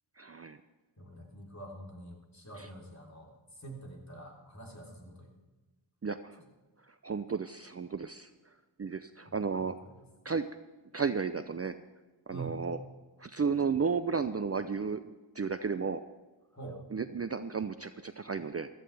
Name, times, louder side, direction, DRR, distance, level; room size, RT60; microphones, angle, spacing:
voice 1, 0.2-0.6 2.6-2.7 6.0-6.4 7.0-8.3 8.8-9.7 10.2-10.5 10.9-11.7 12.3-12.8 13.2-16.0 16.9-18.7, right 5 dB, 30° right, 10 dB, 0.5 m, -33 dB
voice 2, 1.0-3.3 3.6-5.3 9.3-9.4 9.6-9.7 12.3-12.6 16.5-16.8, right 2 dB, 35° left, -1 dB, 3.5 m, -45 dB
16.0 x 13.5 x 3.4 m, 1.2 s
cardioid pair, 50°, 46 cm